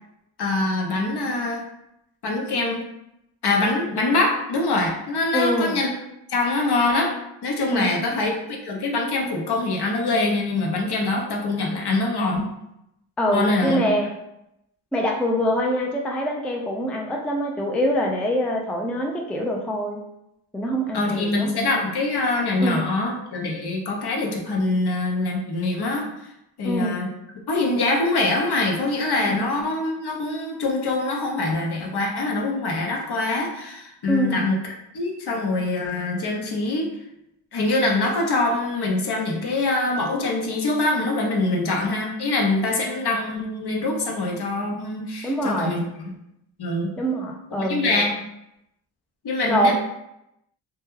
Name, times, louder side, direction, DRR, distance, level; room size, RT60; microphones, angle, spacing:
voice 1, 0.4-1.6 2.2-2.8 3.4-5.9 6.3-7.1 7.4-12.5 13.3-13.8 20.9-26.1 26.6-27.1 27.5-34.6 34.9-36.9 37.5-46.1 46.6-46.9 47.6-48.1 49.2-49.7, left 2 dB, 55° left, 0 dB, 0.8 m, -24 dB
voice 2, 5.3-5.8 7.7-8.0 13.2-14.1 14.9-20.0 20.5-21.5 22.6-22.9 26.6-27.0 29.3-29.4 34.1-34.5 45.2-45.8 47.0-48.1 49.5-49.7, equal, 5° left, 1 dB, 0.3 m, -24 dB
2.3 x 2.1 x 3.1 m, 0.84 s
supercardioid pair, 40°, 48 cm